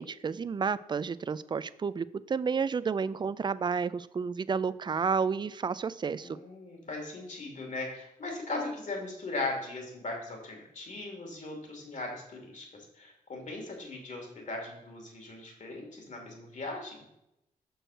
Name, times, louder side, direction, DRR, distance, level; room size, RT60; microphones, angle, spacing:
voice 1, 0.0-6.4, right 5 dB, 30° right, 17 dB, 0.4 m, -31 dB
voice 2, 6.1-17.0, left 2 dB, 55° left, 1 dB, 2.6 m, -39 dB
6.2 x 4.7 x 6.4 m, 0.83 s
cardioid pair, 70°, 15 cm